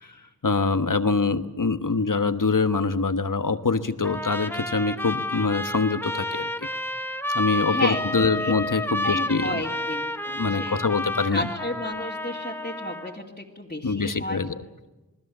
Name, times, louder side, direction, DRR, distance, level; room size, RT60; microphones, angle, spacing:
voice 1, 0.4-6.7 7.3-9.6 10.3-11.5 13.8-14.5, left 4 dB, 60° left, 11 dB, 1.3 m, -24 dB
Trumpet, 4.0-13.2, left 1 dB, 5° left, 1.4 m, -30 dB
voice 2, 7.7-8.5 9.0-10.8 11.3-14.4, left 1 dB, 25° left, -3 dB, 2.6 m, -32 dB
28.0 x 19.5 x 7.4 m, 1.1 s
wide cardioid pair, 40°, 36 cm